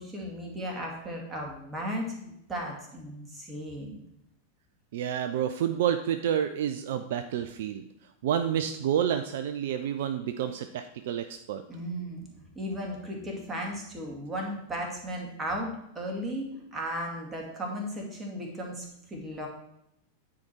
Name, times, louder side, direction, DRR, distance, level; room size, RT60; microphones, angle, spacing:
voice 1, 0.0-4.0 11.7-19.5, equal, 15° right, -1 dB, 2.1 m, -36 dB
voice 2, 4.9-7.8 8.2-11.6, right 9 dB, 55° right, 8 dB, 0.4 m, -29 dB
9.4 x 4.8 x 4.5 m, 0.78 s
figure-of-eight pair, 90°, 0 cm